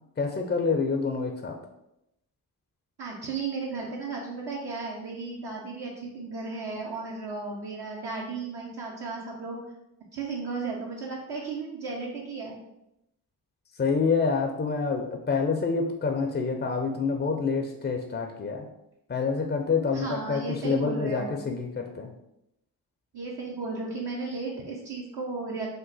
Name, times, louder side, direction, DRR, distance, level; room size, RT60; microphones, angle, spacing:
voice 1, 0.2-1.6 13.8-18.7 19.1-22.1, left 4 dB, 25° left, 3 dB, 0.4 m, -27 dB
voice 2, 3.0-9.6 10.1-12.6 19.9-21.4 23.1-25.7, right 4 dB, 65° right, -3 dB, 0.8 m, -34 dB
3.0 x 2.1 x 3.9 m, 0.84 s
supercardioid pair, 40°, 43 cm